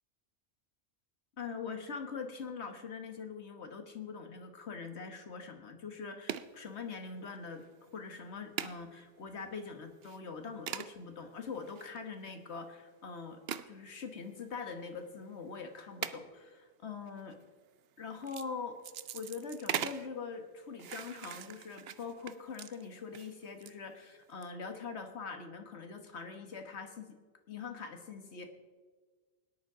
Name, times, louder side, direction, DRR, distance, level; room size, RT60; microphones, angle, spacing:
voice 1, 1.4-13.4 13.7-17.4 18.0-18.8 19.1-27.1 27.5-28.5, left 5 dB, 80° left, 6 dB, 1.7 m, -43 dB
sound 1, 6.3-6.5 7.3-7.6 7.9-8.0 8.6-8.8 9.4-9.5 10.0-10.2 10.7-10.9 11.5-12.3 13.5-13.7 14.6-14.7 16.0-16.2 17.1-17.3 18.1-18.5 18.8-20.1 20.8-23.7 24.2-24.4, right 9 dB, 65° right, 0.8 m, -40 dB
18.0 x 10.5 x 4.9 m, 1.4 s
omnidirectional pair, 1.1 m